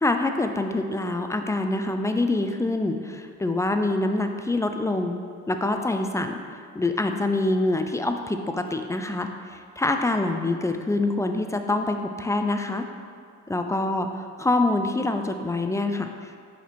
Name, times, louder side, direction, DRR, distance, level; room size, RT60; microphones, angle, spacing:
voice 1, 0.0-5.2 5.5-6.4 6.7-12.9 13.5-14.1 14.4-16.4, left 2 dB, 10° left, 5 dB, 0.3 m, -25 dB
5.6 x 4.3 x 4.4 m, 2.2 s
cardioid pair, 90°, 30 cm